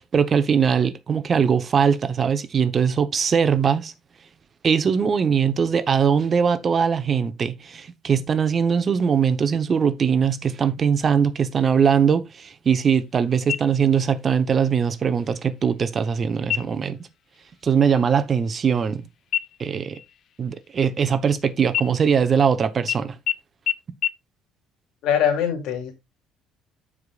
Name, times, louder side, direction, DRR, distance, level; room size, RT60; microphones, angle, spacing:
voice 1, 0.0-3.9 4.6-17.0 17.6-19.1 19.6-20.0 20.4-23.2, right 7 dB, 35° right, 0.9 m, -21 dB
sound 1, 13.5-14.2 14.6-14.7 15.2-15.7 16.4-17.0 17.3-17.6 17.9-19.0 19.3-21.3 21.7-22.5 22.9-23.0 23.3-23.4 23.7-23.8 24.0-24.1, left 11 dB, 55° left, 0.6 m, -29 dB
voice 2, 25.0-25.9, left 8 dB, 75° left, 2.5 m, -22 dB
14.5 x 4.9 x 2.4 m
cardioid pair, 110°, 0 cm